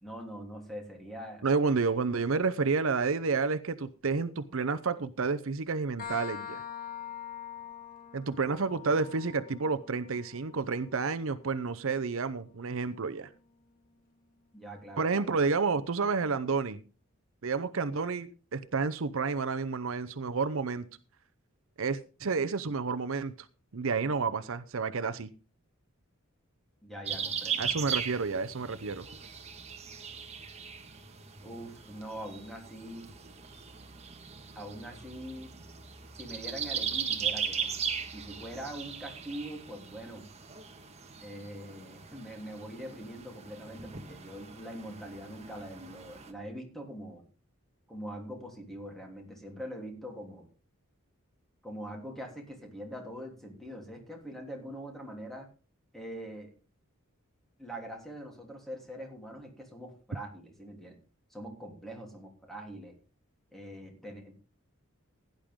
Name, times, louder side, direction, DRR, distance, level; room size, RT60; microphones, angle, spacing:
voice 1, 0.0-1.4 14.5-15.3 26.8-28.0 31.4-33.1 34.5-35.5 36.2-37.7 38.1-40.3 41.2-47.2 47.9-50.5 51.6-55.5 55.9-56.5 57.6-61.0 61.3-62.9 63.5-64.3, equal, ahead, 3.2 m, -43 dB
voice 2, 1.4-6.6 8.1-13.3 15.0-16.8 17.4-20.9 21.8-23.3 23.7-25.3 27.6-29.1, right 4 dB, 65° right, 0.7 m, -30 dB
sound 1, 6.0-13.4, left 8 dB, 40° left, 1.9 m, -45 dB
sound 2, 27.0-46.3, right 7 dB, 30° right, 1.5 m, -38 dB
16.5 x 10.5 x 3.7 m
head